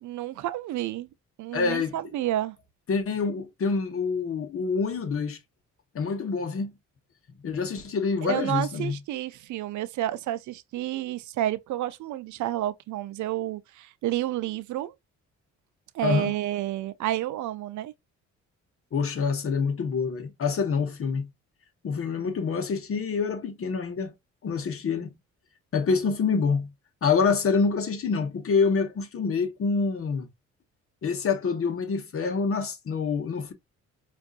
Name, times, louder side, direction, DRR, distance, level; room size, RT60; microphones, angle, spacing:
voice 1, 0.0-1.1 1.4-2.6 8.2-14.9 15.9-17.9, right 13 dB, 75° right, 0.5 m, -30 dB
voice 2, 1.5-1.9 2.9-5.4 5.9-6.7 7.4-9.0 16.0-16.4 18.9-21.3 21.8-24.1 24.4-25.1 25.7-26.7 27.0-30.3 31.0-33.5, left 5 dB, 45° left, 1.0 m, -26 dB
5.2 x 2.5 x 2.4 m
cardioid pair, 90°, 30 cm